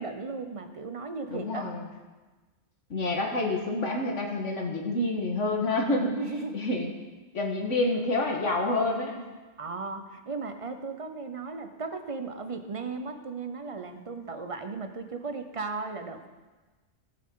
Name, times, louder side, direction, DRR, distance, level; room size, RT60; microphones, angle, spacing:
voice 1, 0.0-1.7 6.0-6.6 9.6-16.3, right 4 dB, 30° right, 7 dB, 0.8 m, -36 dB
voice 2, 1.3-1.9 2.9-6.2 6.5-6.9 7.3-9.3, left 2 dB, 80° left, 1 dB, 1.9 m, -28 dB
17.5 x 7.8 x 3.8 m, 1.3 s
omnidirectional pair, 1.2 m